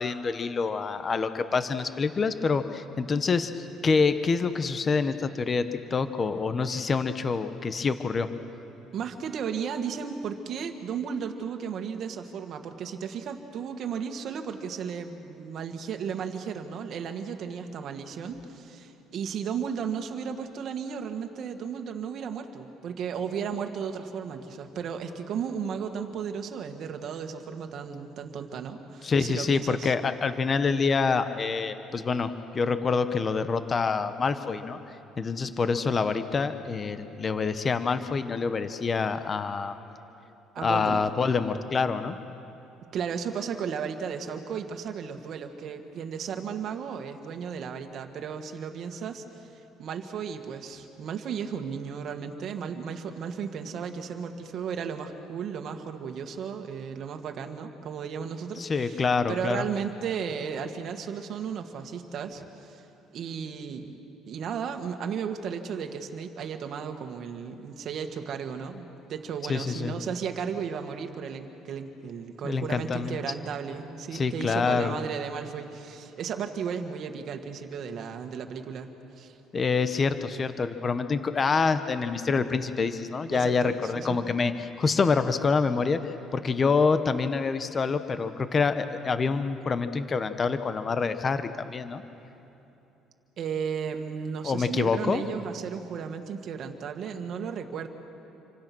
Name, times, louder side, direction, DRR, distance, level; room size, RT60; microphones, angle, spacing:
voice 1, 0.0-8.3 29.0-34.8 35.2-39.7 40.6-42.1 58.6-59.6 69.5-69.9 72.4-73.1 74.1-74.9 79.5-92.0 94.4-95.2, left 5 dB, 30° left, 10 dB, 1.0 m, -26 dB
voice 2, 8.9-29.9 40.5-41.0 42.9-62.9 63.1-63.9 64.3-78.9 79.2-79.4 83.3-84.2 93.4-97.9, right 7 dB, 50° right, 5 dB, 1.9 m, -34 dB
27.5 x 25.5 x 6.2 m, 3.0 s
cardioid pair, 130°, 0 cm